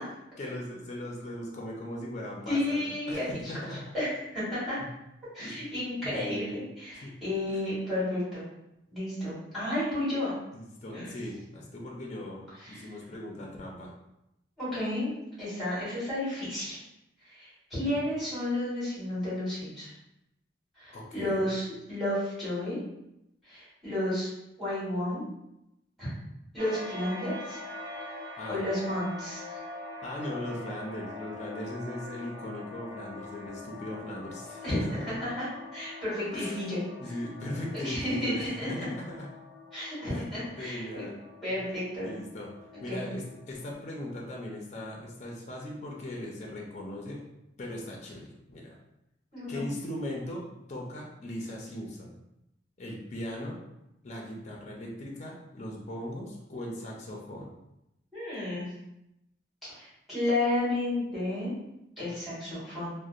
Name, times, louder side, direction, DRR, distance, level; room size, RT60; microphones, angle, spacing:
voice 1, 0.4-3.9 5.4-5.7 6.0-6.6 6.9-7.2 7.5-7.6 10.5-13.9 20.9-21.4 28.4-28.6 30.0-35.2 36.3-36.6 37.0-39.3 40.0-40.3 40.6-41.2 41.5-41.6 42.0-42.5 42.8-47.2 47.6-48.8 49.5-50.4 50.7-52.1 52.8-53.6 54.0-57.5, left 1 dB, 40° left, -1 dB, 0.4 m, -39 dB
voice 2, 2.5-3.3 3.9-4.1 4.3-4.8 5.3-8.4 8.9-10.3 10.9-11.1 12.6-12.9 14.6-15.1 15.4-16.8 17.2-19.9 20.8-22.8 23.4-24.3 24.6-25.3 26.0-26.1 26.5-27.6 28.5-29.6 34.6-36.8 37.0-37.1 37.8-38.7 39.7-41.0 41.4-42.1 42.7-43.0 49.3-49.6 58.1-58.7 59.7-61.5 62.0-62.9, left 1 dB, ahead, -10 dB, 1.4 m, -32 dB
sound 1, 26.6-43.8, left 2 dB, 85° right, 0.7 m, -44 dB
2.7 x 2.0 x 2.4 m, 0.88 s
head